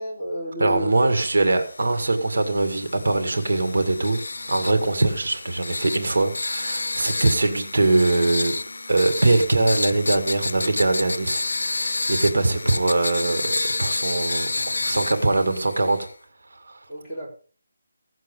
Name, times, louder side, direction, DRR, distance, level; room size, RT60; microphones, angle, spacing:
voice 1, 0.0-1.1 16.9-17.3, right 1 dB, 5° right, -11 dB, 4.2 m, -32 dB
voice 2, 0.6-4.2 4.5-8.5 8.9-16.1 16.5-16.8, right 2 dB, 70° right, 5 dB, 2.2 m, -22 dB
sound 1, 1.2-16.1, left 3 dB, 85° left, 0.5 m, -30 dB
17.0 x 7.5 x 5.3 m, 0.41 s
figure-of-eight pair, 170°, 0 cm